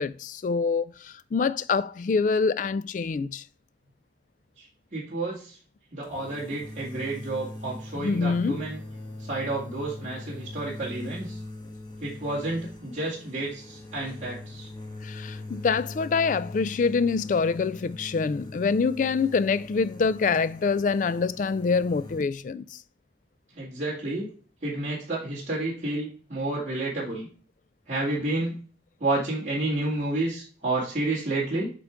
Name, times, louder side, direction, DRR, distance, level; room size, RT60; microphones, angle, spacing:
voice 1, 0.0-3.4 8.0-8.6 15.0-22.8, left 5 dB, 45° left, 0.3 m, -25 dB
voice 2, 4.9-5.6 5.9-8.8 9.2-11.4 12.0-14.7 23.6-24.3 24.6-27.3 27.9-28.5 29.0-31.7, right 2 dB, 40° right, 2.2 m, -30 dB
sound 1, 6.0-22.2, left 2 dB, 25° left, 1.3 m, -41 dB
8.0 x 3.8 x 3.4 m
head